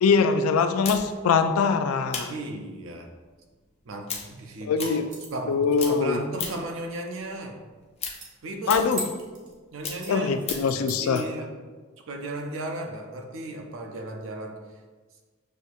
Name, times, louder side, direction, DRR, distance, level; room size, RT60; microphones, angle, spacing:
voice 1, 0.0-2.3 4.6-5.0 5.5-6.2 8.7-9.0 10.1-11.2, left 5 dB, 85° left, 9 dB, 0.3 m, -23 dB
sound 1, 0.8-5.5 5.8-6.8 7.2-10.8, left 5 dB, 30° left, 0.5 m, -36 dB
voice 2, 2.3-3.1 3.8-5.0 5.3-7.6 8.4-8.9 9.7-10.3 11.0-11.5 12.1-14.6, right 1 dB, 65° right, 3 dB, 0.5 m, -35 dB
sound 2, 5.1-5.5 8.1-8.3 8.6-9.5 10.0-11.2, right 1 dB, 40° right, 0.8 m, -39 dB
6.2 x 2.6 x 2.4 m, 1.4 s
head